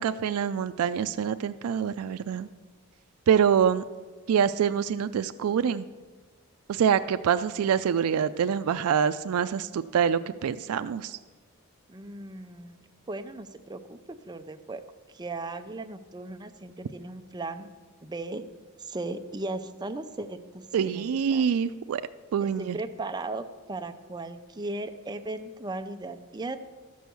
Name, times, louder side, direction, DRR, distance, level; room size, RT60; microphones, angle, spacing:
voice 1, 0.0-2.5 3.3-3.8 4.3-5.9 6.7-11.2 20.7-22.0 22.3-22.8, right 7 dB, 85° right, 11 dB, 0.4 m, -25 dB
voice 2, 11.9-12.8 13.1-14.8 15.1-17.7 18.0-18.4 18.8-21.1 21.3-21.4 22.4-26.6, right 2 dB, 20° right, 8 dB, 0.5 m, -37 dB
13.0 x 6.3 x 6.9 m, 1.3 s
head